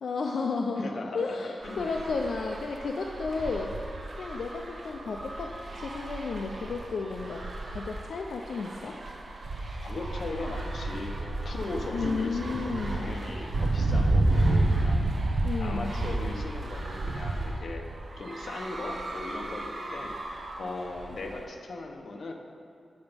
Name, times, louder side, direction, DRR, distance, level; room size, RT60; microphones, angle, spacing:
voice 1, 0.0-0.9 1.1-9.0 11.9-13.1 15.4-16.0, left 4 dB, 80° left, 1 dB, 0.5 m, -33 dB
voice 2, 0.8-1.9 9.8-15.1 15.6-17.8 18.2-20.2 20.6-22.3, left 2 dB, 60° left, 2 dB, 0.9 m, -38 dB
sound 1, 1.6-21.4, right 2 dB, 45° right, 0.9 m, -31 dB
9.2 x 7.0 x 5.1 m, 2.4 s
wide cardioid pair, 150°, 0 cm